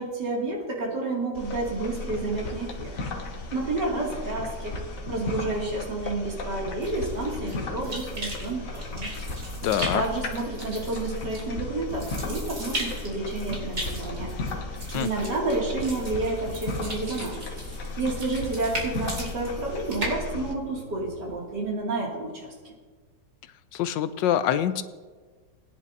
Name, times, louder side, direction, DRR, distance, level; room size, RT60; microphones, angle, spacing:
voice 1, 0.0-2.9 3.5-4.8 5.1-9.1 9.9-14.3 14.9-17.4 18.0-22.7, right 2 dB, 70° right, -3 dB, 3.0 m, -30 dB
sound 1, 1.3-20.5, left 2 dB, 50° left, 1.4 m, -35 dB
sound 2, 6.8-21.7, right 1 dB, 45° right, 3.0 m, -38 dB
voice 2, 9.6-10.0 14.9-15.1 23.7-24.8, left 10 dB, 85° left, 12 dB, 1.3 m, -25 dB
20.5 x 10.0 x 2.7 m, 1.4 s
omnidirectional pair, 1.9 m